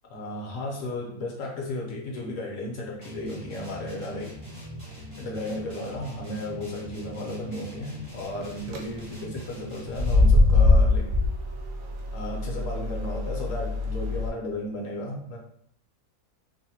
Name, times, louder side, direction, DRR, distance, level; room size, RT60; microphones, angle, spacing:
voice 1, 0.1-4.4 5.1-11.1 12.1-15.4, left 1 dB, 65° left, -1 dB, 0.9 m, -34 dB
sound 1, 3.0-10.5, equal, 25° right, 0.5 m, -42 dB
sound 2, 8.4-8.8 9.9-14.3, left 2 dB, 70° right, 0.9 m, -22 dB
3.2 x 2.1 x 2.7 m, 0.65 s
omnidirectional pair, 1.6 m